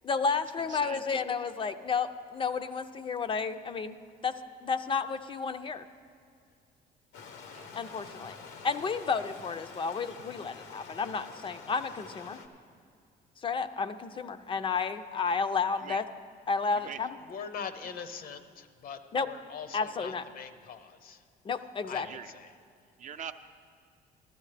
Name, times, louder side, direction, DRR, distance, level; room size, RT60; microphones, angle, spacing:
voice 1, 0.0-4.0 4.2-4.3 4.6-5.8 7.7-8.4 8.6-12.4 13.4-16.0 16.5-17.1 19.1-19.3 19.7-20.2 21.5-22.1, left 5 dB, 30° left, 10 dB, 0.4 m, -31 dB
voice 2, 0.6-1.0 7.5-7.7 15.8-16.0 16.7-17.1 17.8-17.9 22.0-22.3 23.0-23.3, right 8 dB, 50° right, 8 dB, 0.5 m, -43 dB
Stream, 7.1-12.5, left 5 dB, 85° left, 0.9 m, -47 dB
voice 3, 17.3-21.2 21.8-22.5, left 6 dB, 60° left, 10 dB, 0.7 m, -42 dB
15.0 x 12.0 x 3.3 m, 2.3 s
cardioid pair, 110°, 17 cm